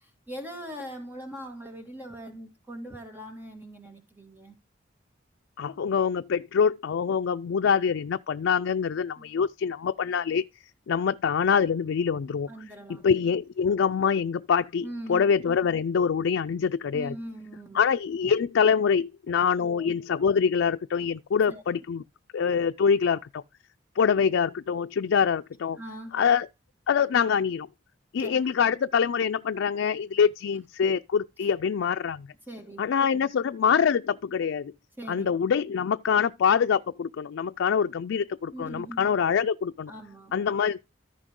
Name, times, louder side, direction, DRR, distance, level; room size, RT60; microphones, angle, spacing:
voice 1, 0.0-4.6 9.2-9.3 12.4-13.1 14.8-15.3 16.9-17.8 19.6-19.9 21.5-21.8 25.7-26.2 28.2-28.3 32.5-32.9 35.0-35.3 38.5-39.2 39.9-40.4, right 1 dB, 10° right, 2.1 m, -41 dB
voice 2, 5.6-10.4 10.9-12.5 13.0-17.1 17.7-22.0 22.3-23.4 24.0-25.8 26.1-26.5 26.9-27.7 28.1-32.3 32.8-34.7 35.1-39.9 40.3-40.8, left 6 dB, 90° left, 0.4 m, -25 dB
14.0 x 5.3 x 3.7 m
head